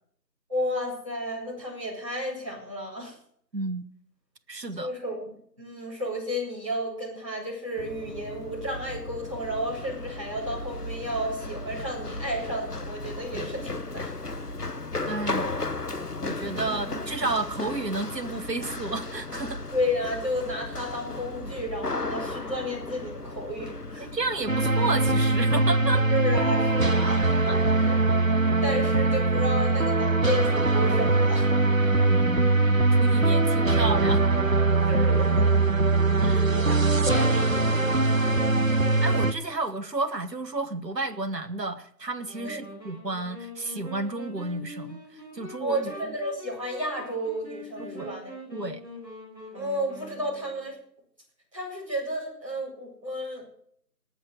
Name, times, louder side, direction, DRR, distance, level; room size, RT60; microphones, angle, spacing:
voice 1, 0.5-3.2 4.8-5.3 5.6-14.1 16.7-17.0 19.7-24.1 26.1-28.0 28.6-31.5 34.9-35.6 36.0-38.4 42.4-42.6 45.6-48.3 49.5-50.8 51.5-53.5, equal, 20° right, -7 dB, 4.8 m, -32 dB
voice 2, 3.5-3.8 4.5-4.9 15.1-15.5 16.2-19.6 24.0-26.1 27.5-27.6 31.9-32.5 32.9-34.3 36.2-36.4 39.0-45.9 47.8-48.1 48.5-48.8, right 2 dB, 75° right, 7 dB, 1.4 m, -31 dB
Run, 7.8-26.8, left 2 dB, 65° left, 1.2 m, -36 dB
sound 1, 24.5-39.3, right 3 dB, 50° right, 0.9 m, -22 dB
sound 2, 42.2-50.7, equal, ahead, 5.4 m, -43 dB
19.0 x 6.7 x 7.9 m, 0.65 s
figure-of-eight pair, 175°, 50 cm